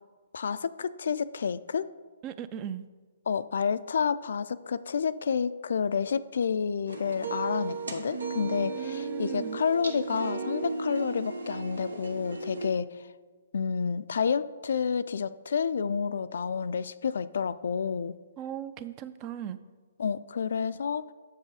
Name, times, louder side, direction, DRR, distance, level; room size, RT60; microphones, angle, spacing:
voice 1, 0.3-1.9 3.3-13.1 13.5-18.2 20.0-21.1, left 6 dB, 65° left, 15 dB, 0.3 m, -29 dB
voice 2, 2.2-2.8 8.7-9.6 18.4-19.6, right 9 dB, 30° right, 13 dB, 0.4 m, -38 dB
sound 1, 6.9-12.7, right 4 dB, 85° right, 0.9 m, -35 dB
7.3 x 6.1 x 4.8 m, 1.4 s
figure-of-eight pair, 130°, 0 cm